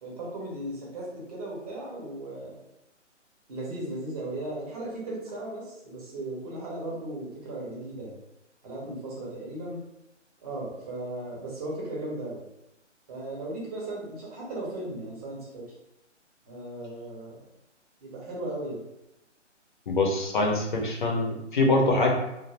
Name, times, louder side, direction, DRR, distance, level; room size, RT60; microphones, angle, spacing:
voice 1, 0.0-2.6 3.5-8.1 8.6-9.8 10.4-12.4 13.1-15.6 16.4-17.4 18.0-18.8, right 1 dB, 30° right, -4 dB, 0.8 m, -36 dB
voice 2, 19.9-22.1, left 2 dB, 40° left, 0 dB, 0.5 m, -24 dB
2.4 x 2.1 x 3.0 m, 0.89 s
figure-of-eight pair, 140°, 37 cm